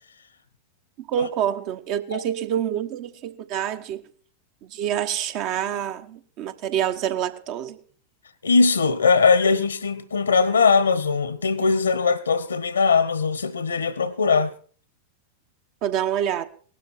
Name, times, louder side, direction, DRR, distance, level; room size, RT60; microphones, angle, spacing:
voice 1, 1.0-4.1 4.6-7.8 15.8-16.4, right 10 dB, 40° right, 1.2 m, -27 dB
voice 2, 8.4-14.5, left 4 dB, 75° left, 1.3 m, -20 dB
18.5 x 12.5 x 4.4 m
figure-of-eight pair, 90°, 0 cm